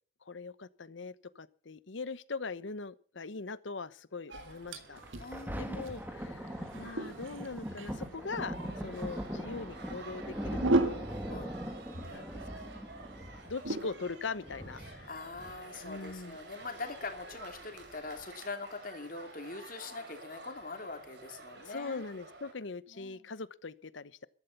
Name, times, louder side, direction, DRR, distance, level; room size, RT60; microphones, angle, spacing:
voice 1, 0.3-5.0 5.6-8.6 8.8-11.5 12.1-12.7 13.4-15.1 15.8-16.4 21.5-24.2, left 4 dB, 70° left, 0.9 m, -41 dB
sound 1, 4.3-22.5, right 2 dB, 55° right, 3.8 m, -51 dB
sound 2, 4.3-18.3, right 2 dB, 80° right, 1.7 m, -39 dB
Thunder, 5.0-16.0 16.6-16.7, equal, 10° right, 1.8 m, -41 dB
voice 2, 5.2-6.0 11.3-11.5 14.8-22.0 22.9-23.3, left 3 dB, 45° left, 2.9 m, -43 dB
14.5 x 12.0 x 5.9 m
head